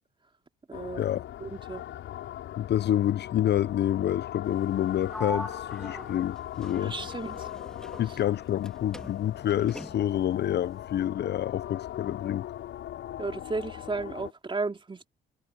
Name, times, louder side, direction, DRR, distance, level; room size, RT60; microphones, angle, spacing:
sound 1, 0.7-14.3, left 12 dB, 80° left, 6.5 m, -40 dB
voice 1, 0.7-1.1 1.4-1.8 6.8-7.5 13.2-15.1, right 3 dB, 25° right, 3.1 m, -34 dB
voice 2, 2.6-6.9 8.0-12.5, left 11 dB, 60° left, 0.6 m, -28 dB
Sliding door, 5.1-8.7 8.9-10.3, left 1 dB, 5° left, 2.4 m, -41 dB
cardioid pair, 90°, 20 cm